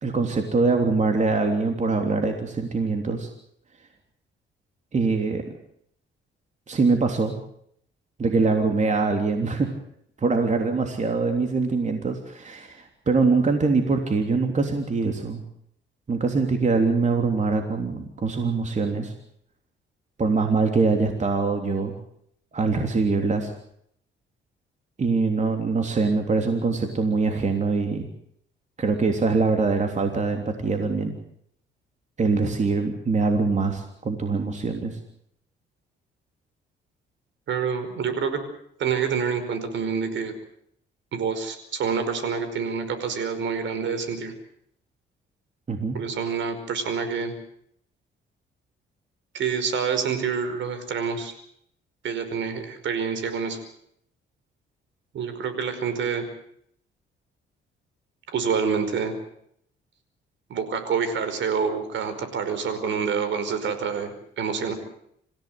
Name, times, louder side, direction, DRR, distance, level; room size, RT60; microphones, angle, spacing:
voice 1, 0.0-3.3 4.9-5.4 6.7-7.4 8.2-9.7 10.2-15.4 16.1-19.1 20.2-21.9 22.5-23.5 25.0-28.1 28.8-31.2 32.2-35.0 45.7-46.0, right 4 dB, 35° right, 5 dB, 3.3 m, -23 dB
voice 2, 37.5-38.4 38.8-40.3 41.1-44.3 45.9-47.3 49.3-51.3 52.0-53.6 55.1-56.2 58.3-59.2 60.5-64.7, right 6 dB, 70° right, 10 dB, 5.1 m, -27 dB
27.0 x 16.0 x 7.8 m, 0.69 s
cardioid pair, 90°, 20 cm